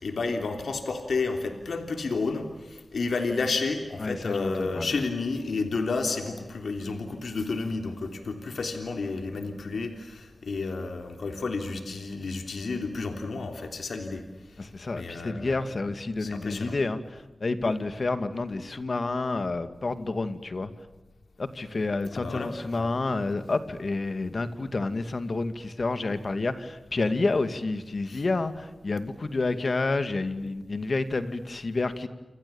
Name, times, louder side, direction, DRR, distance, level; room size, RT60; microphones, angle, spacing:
voice 1, 0.0-14.2 15.0-15.5 16.2-16.8 22.1-22.9 28.1-28.2, left 3 dB, 85° left, 5 dB, 3.3 m, -31 dB
voice 2, 4.0-5.0 14.6-20.7 21.4-32.1, left 3 dB, 55° left, 10 dB, 2.3 m, -29 dB
29.0 x 27.5 x 7.2 m, 1.1 s
wide cardioid pair, 60°, 0 cm